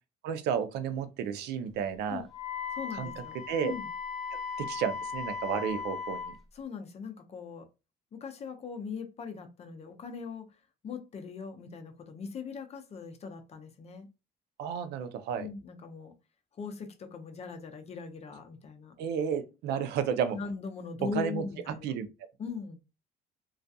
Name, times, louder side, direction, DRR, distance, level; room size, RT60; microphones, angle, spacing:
voice 1, 0.2-2.2 2.9-3.1 3.5-3.7 4.3-6.3 14.6-15.5 19.0-20.4 21.0-21.4 21.8-22.1, right 7 dB, 80° right, 0.4 m, -32 dB
Wind instrument woodwind instrument, 2.3-6.4, left 6 dB, ahead, 0.8 m, -37 dB
voice 2, 2.7-3.9 6.5-7.7 8.1-10.6 10.8-14.1 15.4-16.1 16.5-18.9 20.3-21.9 22.4-22.8, left 5 dB, 40° left, 0.5 m, -40 dB
2.3 x 2.2 x 2.6 m
cardioid pair, 110°, 17 cm